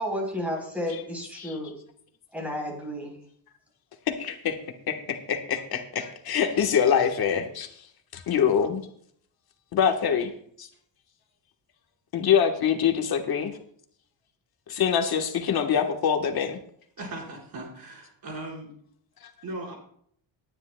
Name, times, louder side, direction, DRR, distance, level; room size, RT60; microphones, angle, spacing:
voice 1, 0.0-1.7 2.3-3.2, equal, 5° right, 0 dB, 3.8 m, -32 dB
voice 2, 4.1-4.6 4.9-7.7 8.1-8.8 9.7-10.3 10.6-10.7 12.1-13.5 14.7-16.6, left 8 dB, 50° left, 4 dB, 1.3 m, -24 dB
voice 3, 17.0-18.7 19.4-19.7, right 2 dB, 50° right, -1 dB, 4.6 m, -38 dB
20.0 x 10.0 x 2.2 m, 0.63 s
cardioid pair, 175°, 47 cm